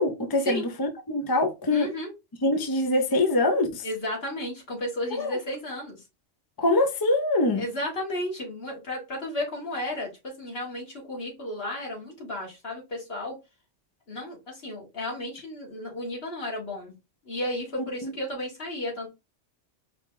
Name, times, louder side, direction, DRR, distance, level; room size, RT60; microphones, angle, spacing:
voice 1, 0.0-1.9 2.4-3.8 5.1-5.4 6.6-7.7 18.0-18.1, left 2 dB, 25° left, 0.5 m, -24 dB
voice 2, 1.7-2.1 3.8-6.0 7.6-13.4 14.1-16.9 17.3-19.1, left 1 dB, 55° left, 2.1 m, -33 dB
4.7 x 2.4 x 3.8 m
omnidirectional pair, 1.2 m